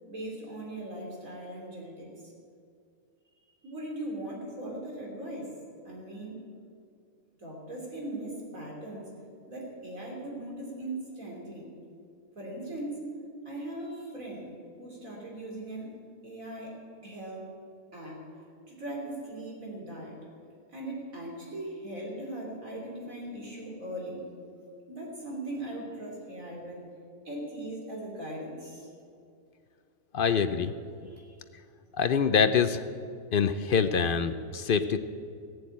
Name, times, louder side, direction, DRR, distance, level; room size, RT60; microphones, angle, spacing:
voice 1, 0.1-2.1 3.6-5.5 5.8-6.4 7.4-9.1 9.5-11.7 12.4-13.0 13.4-14.5 14.8-15.9 16.2-16.7 17.0-17.5 17.9-18.2 18.7-20.2 20.7-24.2 24.9-26.8 27.3-28.9 31.0-31.3, right 1 dB, 80° right, -2 dB, 3.8 m, -39 dB
voice 2, 30.1-30.7 31.9-32.8 33.3-35.0, left 6 dB, 60° left, 10 dB, 0.6 m, -25 dB
16.5 x 7.8 x 8.6 m, 2.4 s
omnidirectional pair, 1.4 m